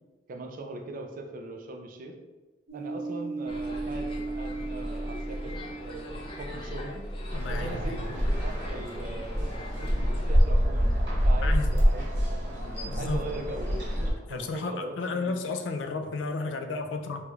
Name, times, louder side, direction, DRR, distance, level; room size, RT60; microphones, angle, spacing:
voice 1, 0.3-2.1 2.7-7.0 7.5-12.4 13.0-13.8 14.3-15.6, right 2 dB, 50° right, 3 dB, 0.4 m, -40 dB
sound 1, 2.7-6.9, right 3 dB, 90° right, 0.9 m, -37 dB
sound 2, 3.5-10.4, equal, 30° left, 0.5 m, -39 dB
voice 2, 7.3-8.1 11.4-11.7 12.8-13.2 14.3-17.2, left 3 dB, 85° left, 6 dB, 0.3 m, -33 dB
sound 3, 7.3-14.1, equal, 70° right, 1.0 m, -26 dB
3.1 x 3.0 x 2.3 m, 1.2 s
head